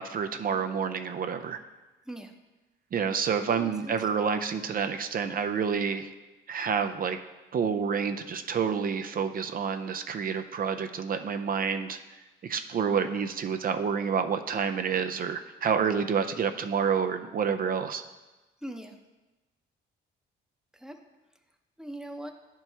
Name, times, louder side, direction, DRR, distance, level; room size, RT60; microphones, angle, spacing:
voice 1, 0.0-1.6 2.9-6.1 6.5-7.2 7.5-12.0 12.4-18.0, right 6 dB, 45° right, 8 dB, 0.5 m, -28 dB
voice 2, 3.3-3.9 18.6-19.0 20.7-21.0 21.8-22.3, right 1 dB, 5° right, 4 dB, 0.7 m, -41 dB
10.5 x 4.5 x 3.4 m, 1.1 s
cardioid pair, 90°, 20 cm